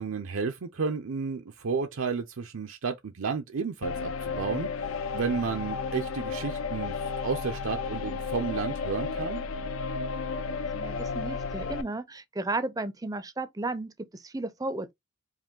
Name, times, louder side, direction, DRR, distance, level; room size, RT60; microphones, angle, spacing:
voice 1, 0.0-6.9 7.2-9.4, right 5 dB, 75° right, 0.5 m, -32 dB
sound 1, 3.8-11.8, left 5 dB, 80° left, 0.5 m, -33 dB
voice 2, 10.7-14.9, right 2 dB, 15° right, 0.4 m, -34 dB
4.8 x 2.6 x 3.7 m
head